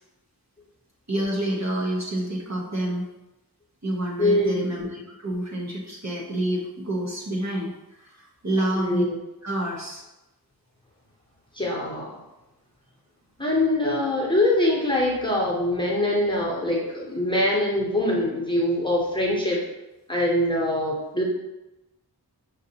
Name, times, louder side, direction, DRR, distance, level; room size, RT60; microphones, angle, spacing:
voice 1, 1.1-3.1 3.8-9.0 9.4-10.0, right 1 dB, 45° right, -4 dB, 1.1 m, -28 dB
voice 2, 4.2-4.7 8.7-9.2 11.5-12.2 13.4-19.6 20.1-21.2, left 1 dB, 10° left, -4 dB, 1.1 m, -23 dB
6.3 x 2.6 x 2.9 m, 0.99 s
wide cardioid pair, 50°, 40 cm